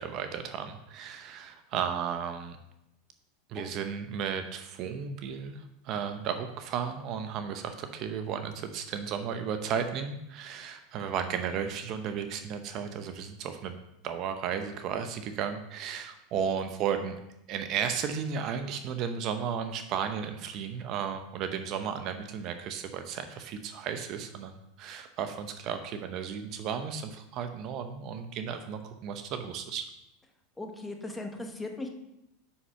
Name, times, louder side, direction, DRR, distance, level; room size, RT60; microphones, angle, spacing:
voice 1, 0.0-2.6 3.5-13.8 14.0-17.2 17.5-29.8, right 7 dB, 50° right, 8 dB, 0.7 m, -34 dB
voice 2, 30.6-31.9, left 2 dB, 10° left, 3 dB, 1.1 m, -38 dB
5.6 x 5.6 x 5.6 m, 0.85 s
supercardioid pair, 115°, 0 cm